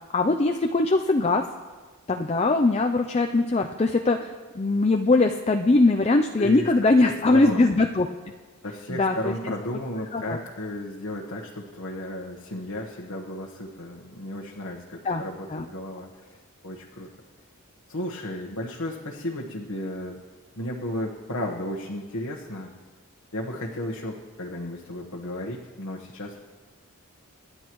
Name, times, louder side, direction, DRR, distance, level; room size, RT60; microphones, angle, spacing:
voice 1, 0.1-1.4 2.1-8.1 8.9-9.3 10.1-10.4 15.0-15.2 15.5-15.7, left 2 dB, 30° left, 5 dB, 0.4 m, -21 dB
voice 2, 6.4-7.7 8.6-17.1 17.9-20.2 20.6-22.7 23.3-26.4, left 1 dB, 70° left, -2 dB, 1.3 m, -34 dB
26.5 x 10.5 x 3.1 m, 1.4 s
head